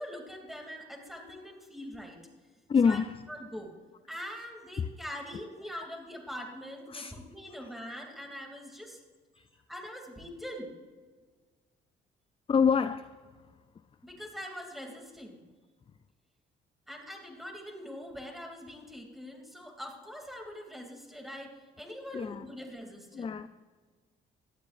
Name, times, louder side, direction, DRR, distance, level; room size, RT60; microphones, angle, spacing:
voice 1, 0.0-2.2 2.8-3.0 3.3-3.7 4.1-9.0 9.7-10.7 14.0-15.4 16.9-23.3, equal, ahead, 2.7 m, -43 dB
voice 2, 2.7-3.1 4.8-4.9 5.8-5.9 6.9-7.1 9.4-9.5 12.5-13.1 22.1-22.4 23.1-23.5, left 6 dB, 30° left, 0.4 m, -26 dB
18.0 x 12.0 x 2.6 m
cardioid pair, 90°, 20 cm